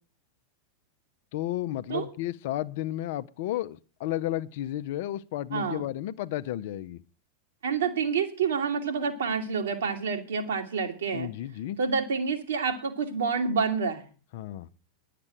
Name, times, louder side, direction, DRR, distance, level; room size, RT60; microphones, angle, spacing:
voice 1, 1.3-7.0 11.1-11.8 14.3-14.7, left 13 dB, 50° left, 0.5 m, -32 dB
voice 2, 5.5-5.9 7.6-11.3 11.8-14.1, right 5 dB, 65° right, 1.8 m, -28 dB
10.5 x 6.8 x 8.8 m
figure-of-eight pair, 90°, 0 cm